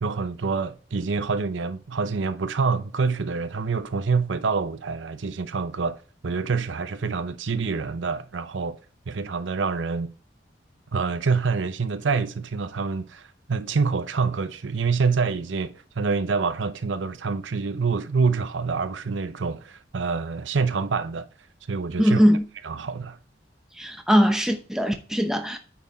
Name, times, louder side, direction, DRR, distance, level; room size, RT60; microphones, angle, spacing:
voice 1, 0.0-8.8 9.1-10.1 10.9-21.3 21.7-22.2 22.6-23.2, right 4 dB, 80° right, 0.6 m, -26 dB
voice 2, 22.0-22.4 23.8-25.6, equal, 5° right, 0.8 m, -20 dB
9.3 x 4.1 x 4.7 m
head